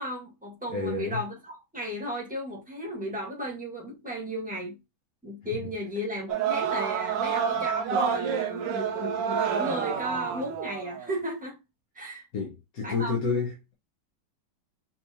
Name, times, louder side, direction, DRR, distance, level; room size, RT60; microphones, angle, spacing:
voice 1, 0.0-4.8 5.2-11.6 11.9-12.3 12.8-13.2, equal, 5° right, 1.5 m, -35 dB
voice 2, 0.7-1.2 12.3-13.7, left 4 dB, 55° left, 1.6 m, -30 dB
sound 1, 6.3-11.1, right 7 dB, 80° right, 1.4 m, -28 dB
5.9 x 3.3 x 2.7 m
omnidirectional pair, 1.9 m